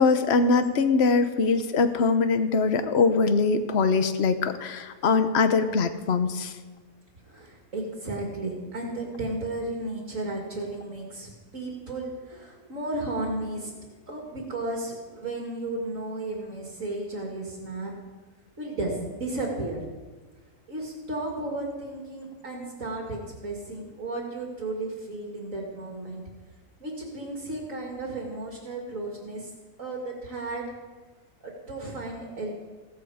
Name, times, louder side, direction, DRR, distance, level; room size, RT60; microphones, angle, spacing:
voice 1, 0.0-6.5, left 4 dB, 50° left, 9 dB, 1.2 m, -22 dB
voice 2, 7.3-13.7 14.1-17.9 18.6-19.8 20.7-26.2 26.8-29.5 29.8-30.7 31.4-32.5, right 2 dB, 65° right, 0 dB, 2.8 m, -34 dB
16.0 x 14.5 x 5.0 m, 1.3 s
omnidirectional pair, 1.5 m